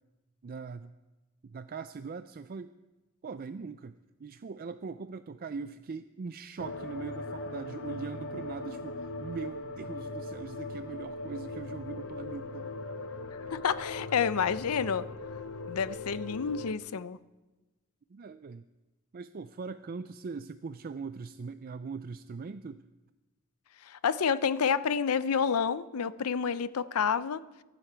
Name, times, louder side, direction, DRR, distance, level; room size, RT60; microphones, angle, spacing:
voice 1, 0.4-0.9 1.4-2.7 3.2-12.7 18.1-18.7 19.1-22.8, right 5 dB, 40° right, 12 dB, 0.4 m, -41 dB
sound 1, 6.6-16.7, left 2 dB, 65° left, 0.9 m, -40 dB
voice 2, 13.5-15.1 15.7-17.2 23.8-27.4, left 6 dB, 85° left, 16 dB, 0.6 m, -29 dB
23.5 x 11.5 x 4.6 m, 1.1 s
head